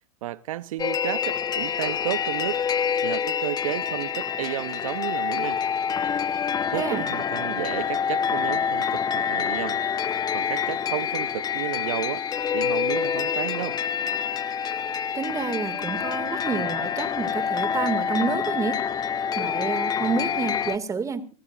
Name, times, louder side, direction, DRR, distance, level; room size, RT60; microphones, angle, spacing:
voice 1, 0.2-2.6 3.0-5.6 6.2-9.8 10.3-12.2 12.5-13.8, right 14 dB, 70° right, 0.8 m, -32 dB
sound 1, 0.8-20.8, left 7 dB, 20° left, 1.0 m, -27 dB
voice 2, 6.7-7.1 15.1-18.8 19.3-21.3, right 5 dB, 15° right, 2.2 m, -29 dB
27.0 x 16.0 x 2.5 m
hypercardioid pair, 115°, 18 cm